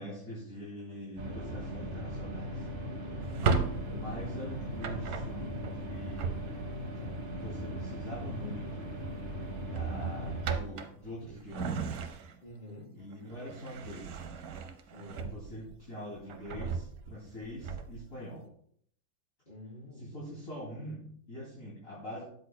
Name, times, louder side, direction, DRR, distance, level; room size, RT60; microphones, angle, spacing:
voice 1, 0.0-2.7 3.9-6.4 7.3-8.9 9.6-11.9 12.9-14.3 15.1-18.4 19.9-22.2, equal, 45° left, -7 dB, 3.0 m, -44 dB
sound 1, 1.2-10.5, equal, 35° right, 1.2 m, -39 dB
voice 2, 3.0-3.5 3.8-4.0 12.4-13.0 14.9-15.3 19.5-20.1, equal, 25° left, -6 dB, 4.1 m, -49 dB
Drawer open or close, 3.2-6.9 8.4-8.7 9.0-9.2 9.6-12.6 13.0-15.7 16.2-18.1, right 5 dB, 65° right, 1.2 m, -36 dB
13.0 x 8.5 x 2.2 m, 0.65 s
omnidirectional pair, 1.9 m